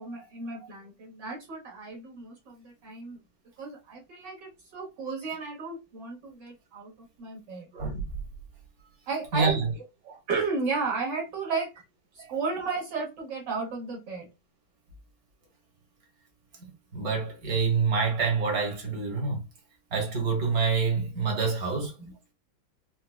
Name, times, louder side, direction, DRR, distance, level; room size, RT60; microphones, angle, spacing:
voice 1, 0.0-3.2 3.6-7.7 9.1-9.6 10.3-11.7 12.1-14.3 22.0-22.1, right 4 dB, 75° right, 1.8 m, -33 dB
voice 2, 9.3-9.7 10.1-10.2 12.2-12.3 16.9-19.4 19.9-21.9, right 5 dB, 55° right, 1.7 m, -27 dB
4.7 x 2.2 x 2.2 m
omnidirectional pair, 1.9 m